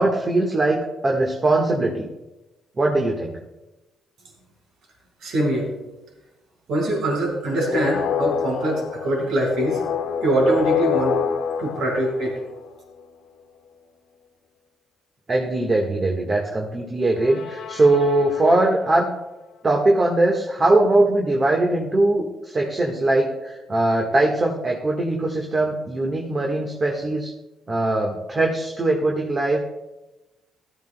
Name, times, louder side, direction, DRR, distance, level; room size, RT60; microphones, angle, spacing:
voice 1, 0.0-2.1 2.8-3.3 15.3-19.1 19.6-27.3 27.7-29.6, right 2 dB, 30° right, 0 dB, 1.5 m, -21 dB
voice 2, 5.2-5.7 6.7-9.8 10.2-11.2 11.6-12.4, right 1 dB, 75° right, -1 dB, 4.9 m, -23 dB
sound 1, 7.5-12.8 17.2-18.8, left 7 dB, 90° left, 1.5 m, -27 dB
16.5 x 13.5 x 2.3 m, 1.0 s
cardioid pair, 90°, 0 cm